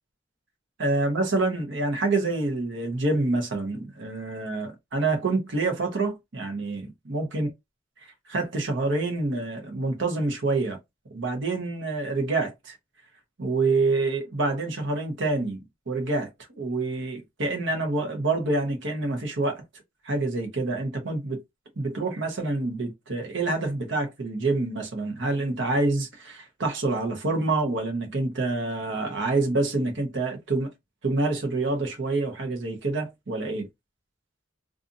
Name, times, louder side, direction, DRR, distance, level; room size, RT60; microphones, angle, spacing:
voice 1, 0.8-7.5 8.3-10.8 11.1-12.8 13.4-16.3 16.6-19.6 20.0-21.4 21.8-30.7 31.0-33.7, right 2 dB, 65° right, 0.9 m, -27 dB
2.5 x 2.5 x 2.5 m
head